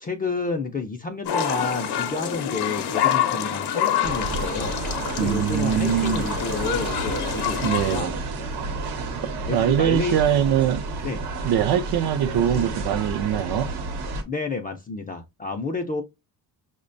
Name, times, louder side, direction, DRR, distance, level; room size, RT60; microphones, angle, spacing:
voice 1, 0.0-4.8 5.2-8.1 9.5-10.2 11.0-11.2 14.3-16.0, left 4 dB, 25° left, 0.3 m, -30 dB
sound 1, 1.2-8.0, left 9 dB, 75° left, 0.6 m, -27 dB
sound 2, 1.7-12.9, right 1 dB, 45° right, 0.7 m, -43 dB
sound 3, 4.0-14.2, right 3 dB, 85° right, 0.9 m, -31 dB
voice 2, 5.2-6.3 7.6-8.1 8.8-8.9 9.2-10.8 11.4-13.7, right 10 dB, 70° right, 0.5 m, -23 dB
5.0 x 2.2 x 2.5 m
cardioid pair, 130°, 39 cm